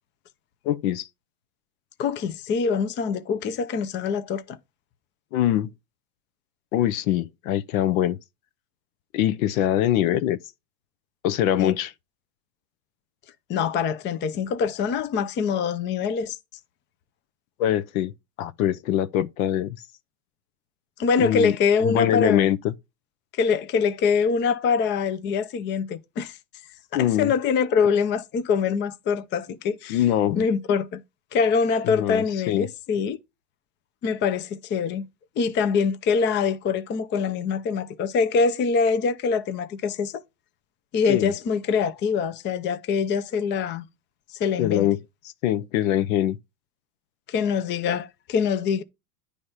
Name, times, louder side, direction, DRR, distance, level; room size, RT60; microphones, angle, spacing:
voice 1, 0.6-1.1 5.3-5.7 6.7-8.2 9.1-10.4 11.2-11.9 17.6-18.1 18.4-19.8 21.2-22.7 26.9-27.3 29.9-30.5 31.8-32.7 41.1-41.3 44.6-45.0 45.4-46.4, left 12 dB, 60° left, 0.7 m, -23 dB
voice 2, 2.0-4.6 11.6-11.7 13.5-16.4 21.0-22.5 23.4-26.4 26.9-30.0 30.4-31.0 31.3-33.2 34.0-35.1 35.4-40.2 40.9-43.9 44.4-44.9 47.3-48.8, left 5 dB, 25° left, 0.6 m, -24 dB
9.4 x 3.4 x 5.5 m
hypercardioid pair, 120°, 47 cm